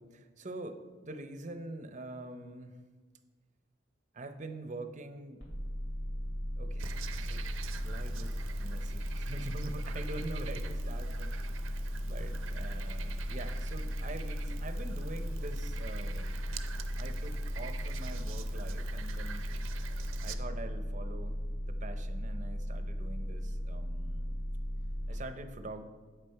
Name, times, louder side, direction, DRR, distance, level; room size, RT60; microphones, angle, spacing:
voice 1, 0.0-2.7 4.1-5.4 6.6-7.5 7.8-16.5 17.0-19.5 20.2-21.3 21.7-24.3 25.1-25.8, right 2 dB, 35° right, 8 dB, 0.6 m, -45 dB
sound 1, 5.4-25.1, equal, 70° left, 2.5 m, -36 dB
Frog, 6.8-20.3, right 5 dB, 80° right, 0.5 m, -46 dB
8.2 x 6.5 x 4.5 m, 1.4 s
head